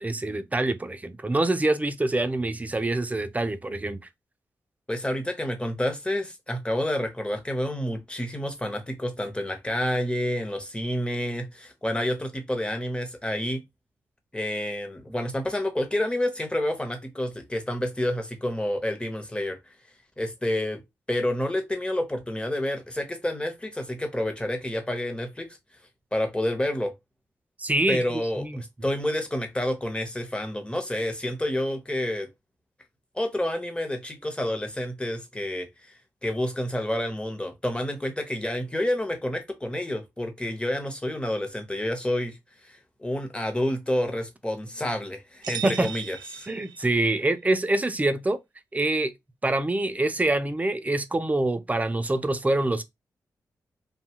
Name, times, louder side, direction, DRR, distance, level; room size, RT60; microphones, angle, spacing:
voice 1, 0.0-4.0 27.6-28.6 45.6-45.9 46.5-48.4 48.7-49.1 49.4-52.8, right 2 dB, 20° right, 0.4 m, -25 dB
voice 2, 4.9-13.6 14.3-19.6 20.2-20.8 21.1-25.5 26.1-26.9 27.9-32.3 33.1-35.9 36.2-42.4 42.6-46.5, left 1 dB, 15° left, 0.8 m, -29 dB
sound 1, 45.4-47.3, right 9 dB, 80° right, 0.4 m, -38 dB
2.7 x 2.3 x 2.9 m
cardioid pair, 60°, 7 cm